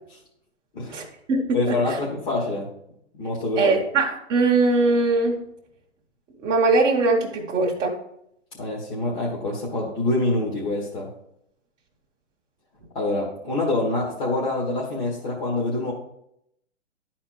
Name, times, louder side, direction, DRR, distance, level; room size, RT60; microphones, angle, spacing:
voice 1, 0.9-2.0 3.5-5.4 6.4-8.0, right 3 dB, 10° right, -2 dB, 0.9 m, -21 dB
voice 2, 1.5-2.7 3.1-3.8 8.6-11.1 12.9-15.9, left 2 dB, 40° left, -4 dB, 2.0 m, -26 dB
11.5 x 4.3 x 4.5 m, 0.75 s
hypercardioid pair, 160°, 37 cm